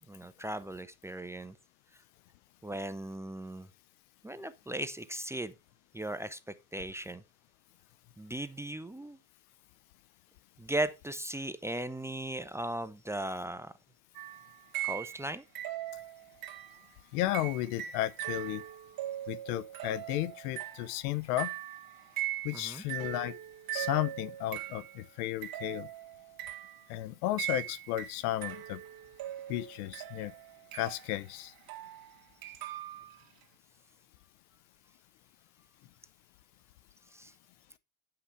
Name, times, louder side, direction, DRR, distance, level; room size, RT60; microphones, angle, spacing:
voice 1, 0.1-1.6 2.6-3.7 4.2-5.5 5.9-7.2 8.2-9.2 10.6-13.7 14.8-15.4 22.5-22.8 37.1-37.3, right 1 dB, 5° right, 0.5 m, -37 dB
sound 1, 14.1-15.3 15.5-16.9 17.3-25.0 25.4-26.9 27.4-33.2, right 13 dB, 50° right, 1.6 m, -40 dB
voice 2, 17.1-18.6 19.3-21.5 22.4-23.4 23.7-25.9 26.9-28.8 29.5-30.3 30.7-31.5, left 15 dB, 80° left, 0.7 m, -33 dB
9.8 x 5.9 x 4.5 m
supercardioid pair, 105°, 44 cm